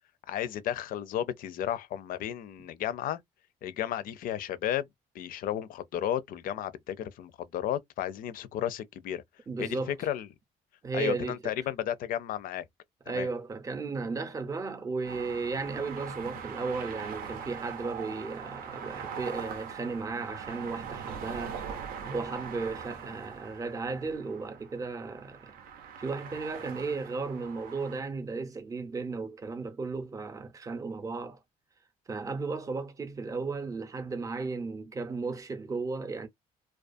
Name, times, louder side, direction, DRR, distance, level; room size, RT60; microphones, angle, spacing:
voice 1, 0.3-3.2 3.6-4.9 5.1-9.2 9.6-10.3 10.9-12.6 13.1-13.3, left 11 dB, 65° left, 0.4 m, -33 dB
voice 2, 9.5-10.0 10.8-11.5 13.1-21.6 22.0-25.6 26.0-31.4 32.1-36.3, right 4 dB, 20° right, 0.6 m, -35 dB
sound 1, 15.0-28.0, right 7 dB, 75° right, 0.6 m, -42 dB
2.3 x 2.3 x 2.5 m
cardioid pair, 120°, 15 cm